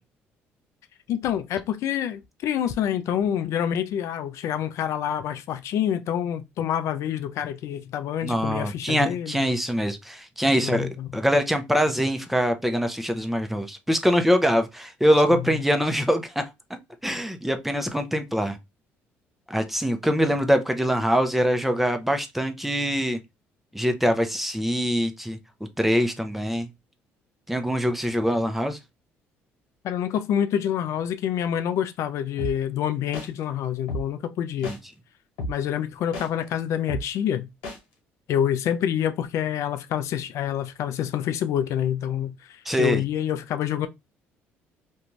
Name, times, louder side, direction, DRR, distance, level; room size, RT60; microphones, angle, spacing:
voice 1, 1.1-9.5 10.6-11.1 15.3-15.6 29.8-34.7 35.5-37.5 38.3-43.9, left 10 dB, 65° left, 0.4 m, -27 dB
voice 2, 8.2-16.5 17.0-18.6 19.5-23.2 23.7-25.4 25.8-26.7 27.5-28.8 34.6-34.8 42.7-43.0, equal, 5° right, 0.6 m, -23 dB
sound 1, 32.4-32.5 33.1-33.3 33.9-34.0 34.6-34.8 35.4-35.5 36.1-36.3 36.9-37.0 37.6-37.8, left 1 dB, 85° left, 1.2 m, -31 dB
2.5 x 2.2 x 3.0 m
supercardioid pair, 70°, 5 cm